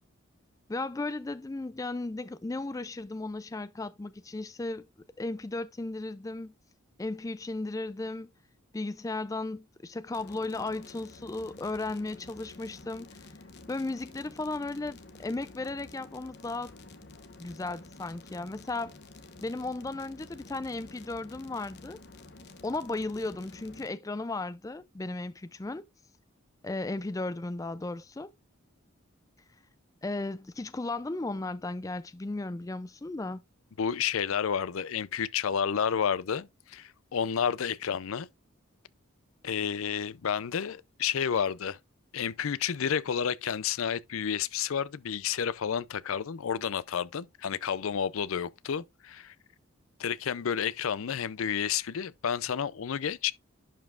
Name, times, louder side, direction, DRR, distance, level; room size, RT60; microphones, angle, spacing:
voice 1, 0.7-4.9 5.2-6.5 7.0-8.3 8.7-13.3 13.7-16.7 17.4-18.9 19.4-22.0 22.6-25.8 26.6-28.3 30.0-33.4, left 2 dB, 15° left, 0.3 m, -35 dB
sound 1, 10.1-23.9, left 2 dB, 50° left, 1.0 m, -50 dB
voice 2, 33.8-38.3 39.4-41.8 42.1-49.3 50.0-53.3, left 7 dB, 75° left, 0.5 m, -30 dB
11.0 x 5.3 x 2.4 m
head